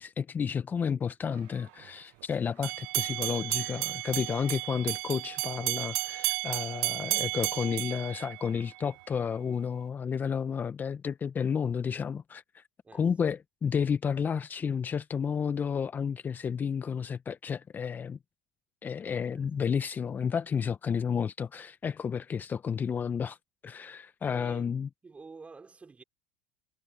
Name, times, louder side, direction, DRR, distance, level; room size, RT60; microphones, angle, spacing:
voice 1, 0.0-12.6 12.9-18.2 18.8-23.4 23.6-24.9, left 7 dB, 25° left, 1.0 m, -31 dB
voice 2, 0.7-1.1 12.8-13.1 19.3-20.0 24.3-24.7 25.0-26.0, right 4 dB, 20° right, 5.8 m, -50 dB
sound 1, 2.6-8.9, right 28 dB, 65° right, 0.7 m, -33 dB
hypercardioid pair, 85°, 7 cm